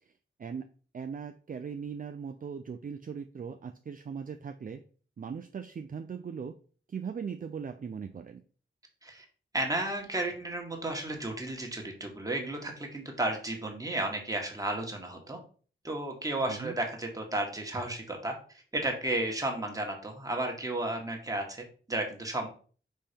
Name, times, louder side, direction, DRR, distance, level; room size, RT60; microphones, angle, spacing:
voice 1, 0.9-4.8 5.2-6.5 6.9-8.4 16.5-16.8, right 6 dB, 45° right, 8 dB, 0.5 m, -39 dB
voice 2, 9.5-15.4 15.8-18.3 18.7-22.5, right 1 dB, 15° right, 1 dB, 1.6 m, -33 dB
5.5 x 4.3 x 5.1 m, 0.41 s
wide cardioid pair, 145°, 20 cm